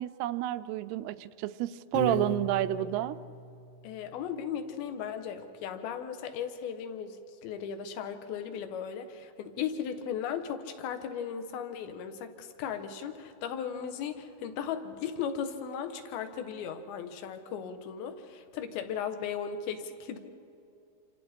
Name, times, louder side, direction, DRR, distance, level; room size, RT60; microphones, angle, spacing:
voice 1, 0.0-3.2, right 13 dB, 80° right, 13 dB, 2.6 m, -30 dB
Piano, 1.9-4.2, left 1 dB, 90° left, 4.9 m, -38 dB
voice 2, 3.8-20.2, left 7 dB, 70° left, 8 dB, 3.0 m, -37 dB
28.0 x 26.5 x 4.5 m, 2.6 s
omnidirectional pair, 4.8 m